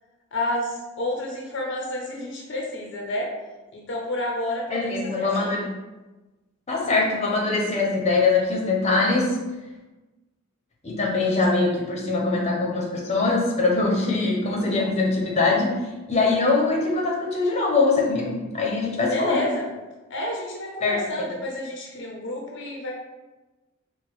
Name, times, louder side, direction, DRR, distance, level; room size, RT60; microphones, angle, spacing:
voice 1, 0.3-3.3 3.7-5.5 11.1-11.4 19.1-19.6 20.1-22.9, left 1 dB, 60° left, 0 dB, 0.7 m, -30 dB
voice 2, 4.7-5.6 6.7-9.4 10.8-15.7 16.1-19.5 20.8-21.3, left 3 dB, 35° left, -2 dB, 0.8 m, -22 dB
4.4 x 2.2 x 4.3 m, 1.1 s
head